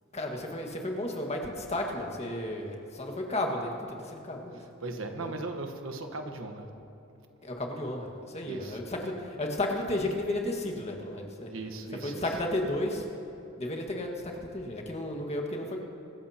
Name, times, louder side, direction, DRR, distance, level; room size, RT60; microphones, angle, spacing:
voice 1, 0.1-3.7 4.1-4.6 5.2-5.3 7.4-11.5 12.0-13.0 13.6-15.8, left 1 dB, 35° left, 1 dB, 1.7 m, -33 dB
voice 2, 4.5-6.7 8.4-8.8 11.5-12.3, right 2 dB, 80° right, 5 dB, 1.3 m, -38 dB
24.5 x 14.0 x 2.9 m, 2.9 s
head